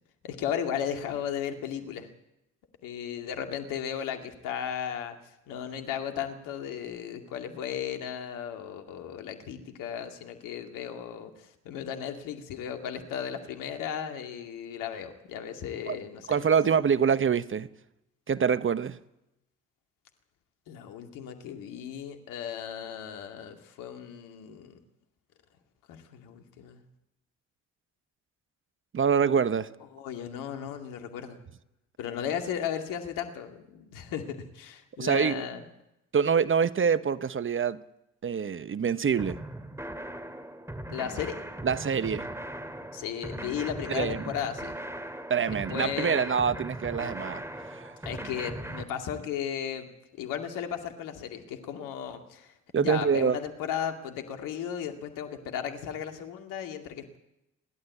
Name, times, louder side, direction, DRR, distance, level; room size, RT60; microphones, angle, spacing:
voice 1, 0.2-2.1 2.8-5.2 5.5-16.5 20.7-24.8 25.9-26.8 29.9-31.4 32.0-35.6 40.9-41.4 42.9-44.8 45.4-46.3 48.1-52.5 52.8-57.2, left 8 dB, 75° left, 5 dB, 2.3 m, -35 dB
voice 2, 16.3-17.7 18.3-19.0 28.9-29.7 35.0-35.5 36.1-37.8 38.2-39.4 41.6-42.3 43.9-44.2 45.3-47.4 47.7-47.9 52.7-53.4, right 6 dB, 40° right, 15 dB, 1.0 m, -25 dB
sound 1, 39.2-48.8, right 1 dB, 10° right, 2.7 m, -39 dB
29.5 x 12.0 x 8.5 m, 0.87 s
hypercardioid pair, 50°, 33 cm